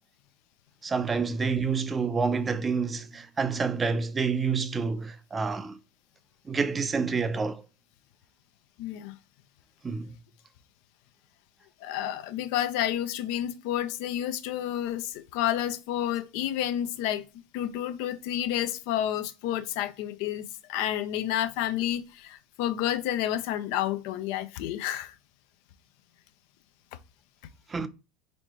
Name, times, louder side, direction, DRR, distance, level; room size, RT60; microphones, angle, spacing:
voice 1, 0.8-5.8 6.5-7.6 9.8-10.1 27.7-27.9, right 5 dB, 25° right, 0.5 m, -28 dB
voice 2, 8.8-9.2 11.8-17.2 17.5-25.1, left 11 dB, 60° left, 0.5 m, -30 dB
4.2 x 4.2 x 2.9 m
figure-of-eight pair, 75°, 0 cm